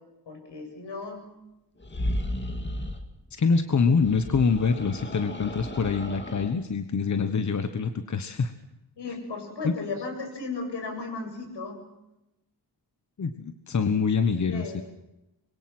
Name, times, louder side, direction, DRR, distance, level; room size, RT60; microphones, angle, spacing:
voice 1, 0.3-1.2 9.0-11.8 14.5-14.8, left 3 dB, 75° left, 3 dB, 8.0 m, -35 dB
sound 1, 1.8-3.1 3.9-6.5, left 1 dB, 25° left, 2.3 m, -34 dB
voice 2, 3.3-8.5 9.6-9.7 13.2-14.8, left 5 dB, 40° left, 8 dB, 1.3 m, -25 dB
25.5 x 22.5 x 6.1 m, 0.91 s
wide cardioid pair, 160°, 42 cm